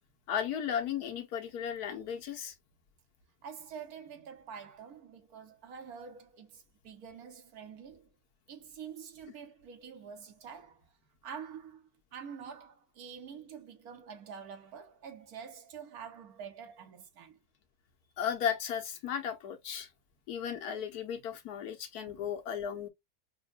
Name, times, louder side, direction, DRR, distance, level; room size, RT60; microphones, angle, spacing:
voice 1, 0.3-2.5 18.2-19.9 20.3-22.9, left 8 dB, 80° left, 1.4 m, -35 dB
voice 2, 3.4-8.1 8.5-10.9 11.2-17.4 22.1-22.3, right 7 dB, 75° right, 1.4 m, -47 dB
5.4 x 2.2 x 2.4 m
omnidirectional pair, 1.6 m